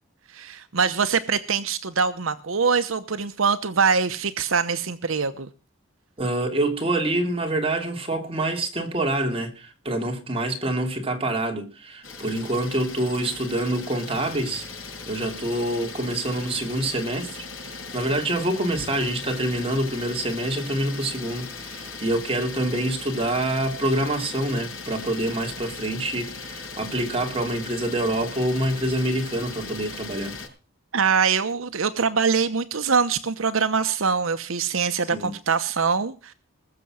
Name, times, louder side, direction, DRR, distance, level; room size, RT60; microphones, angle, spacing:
voice 1, 0.3-5.5 30.9-36.3, right 5 dB, 75° right, 0.9 m, -23 dB
voice 2, 6.2-14.6 15.1-30.4 35.1-35.3, right 1 dB, 25° right, 3.0 m, -26 dB
Idling, 12.0-30.5, left 4 dB, 80° left, 6.1 m, -38 dB
20.5 x 7.0 x 6.3 m
head